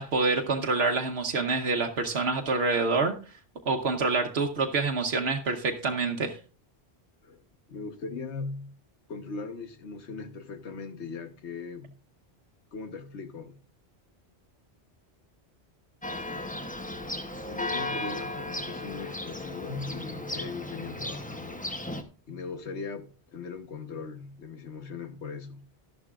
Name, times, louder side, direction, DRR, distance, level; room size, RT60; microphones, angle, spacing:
voice 1, 0.0-3.1 3.7-6.4, right 3 dB, 70° right, 1.2 m, -27 dB
voice 2, 7.7-8.7 9.1-11.9 12.7-13.6 17.4-21.6 22.3-25.6, left 4 dB, 90° left, 1.4 m, -39 dB
Church bell, 16.0-22.0, left 1 dB, 10° left, 0.7 m, -35 dB
12.5 x 11.5 x 2.4 m
omnidirectional pair, 1.1 m